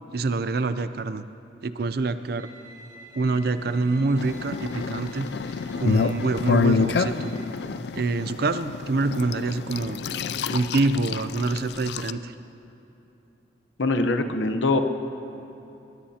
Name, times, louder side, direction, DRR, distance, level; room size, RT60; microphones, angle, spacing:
voice 1, 0.1-1.3 1.6-2.5 3.1-5.3 5.8-7.3 7.9-10.0 10.5-12.3, right 3 dB, 55° right, 12 dB, 0.5 m, -26 dB
Bowed string instrument, 2.4-7.4, right 2 dB, 85° right, 3.4 m, -49 dB
sound 1, 3.3-5.0 6.3-8.5, equal, 25° right, 2.2 m, -47 dB
sound 2, 4.2-12.1, left 5 dB, 60° left, 0.4 m, -28 dB
voice 2, 13.8-14.8, left 2 dB, 75° left, 7 dB, 0.9 m, -23 dB
21.0 x 20.0 x 2.9 m, 2.9 s
head